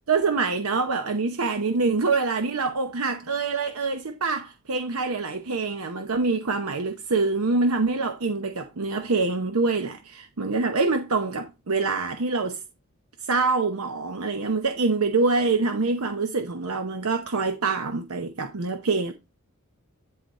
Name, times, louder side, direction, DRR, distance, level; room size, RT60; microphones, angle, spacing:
voice 1, 0.1-12.6 13.2-19.1, right 3 dB, 85° right, 0.8 m, -25 dB
11.0 x 4.0 x 4.1 m
head